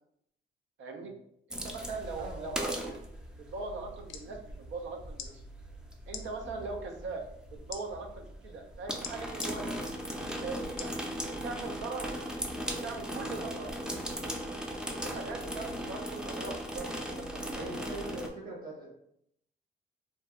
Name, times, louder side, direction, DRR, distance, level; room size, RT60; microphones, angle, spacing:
voice 1, 0.8-1.1 1.5-3.0 3.4-5.3 6.1-7.2 7.5-9.7 10.3-13.8 14.7-17.7, right 4 dB, 75° right, 3 dB, 0.5 m, -41 dB
sound 1, 1.5-18.3, equal, 5° right, 0.4 m, -38 dB
voice 2, 2.2-2.6 4.2-4.4 6.4-6.6 15.1-15.2 17.5-18.9, right 2 dB, 45° right, -1 dB, 1.1 m, -42 dB
sound 2, 4.1-4.3 5.1-5.3 6.1-6.2 7.7-7.8 9.0-9.5 10.8-11.0 11.6-11.7, left 7 dB, 75° left, 0.5 m, -41 dB
2.6 x 2.2 x 3.5 m, 0.73 s
cardioid pair, 90°, 20 cm